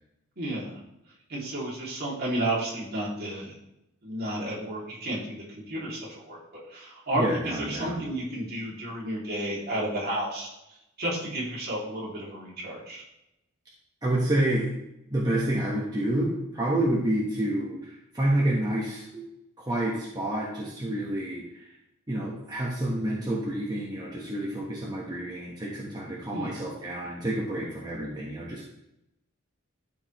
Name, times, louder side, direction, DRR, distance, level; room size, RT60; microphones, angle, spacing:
voice 1, 0.4-0.8 1.3-3.5 4.0-10.5 11.0-13.0 22.9-23.2 26.3-26.5, right 1 dB, 50° right, -4 dB, 2.6 m, -32 dB
voice 2, 7.1-8.0 14.0-14.7 15.1-19.3 19.6-21.6 22.1-28.6, right 1 dB, 20° right, -5 dB, 1.2 m, -29 dB
12.5 x 4.9 x 3.1 m, 0.84 s
head